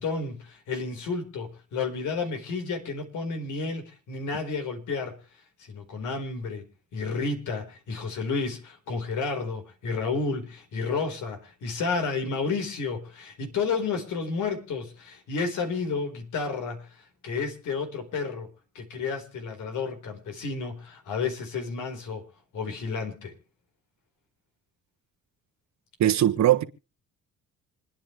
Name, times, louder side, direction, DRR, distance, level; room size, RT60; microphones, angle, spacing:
voice 1, 0.0-5.2 5.6-6.6 6.9-16.9 17.2-18.5 18.7-22.2 22.5-23.3, left 4 dB, 75° left, 4.5 m, -31 dB
voice 2, 26.0-26.6, right 12 dB, 65° right, 1.4 m, -20 dB
27.0 x 10.0 x 3.3 m
cardioid pair, 90°, 30 cm